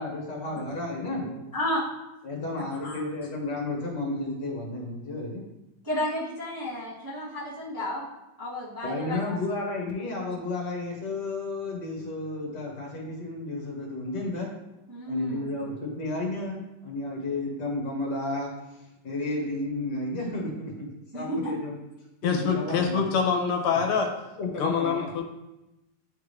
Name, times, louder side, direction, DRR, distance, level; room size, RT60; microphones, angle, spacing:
voice 1, 0.0-1.5 2.2-5.4 8.8-14.5 15.1-20.9 21.1-21.8 22.2-23.0 24.4-24.9, left 2 dB, 55° left, -2 dB, 1.9 m, -32 dB
voice 2, 5.8-8.0 8.4-9.4 14.9-15.5 21.1-21.5, left 1 dB, 10° right, -8 dB, 1.2 m, -32 dB
voice 3, 22.2-24.1 24.6-25.2, left 6 dB, 85° left, 3 dB, 1.7 m, -25 dB
10.5 x 3.6 x 3.2 m, 0.96 s
omnidirectional pair, 2.4 m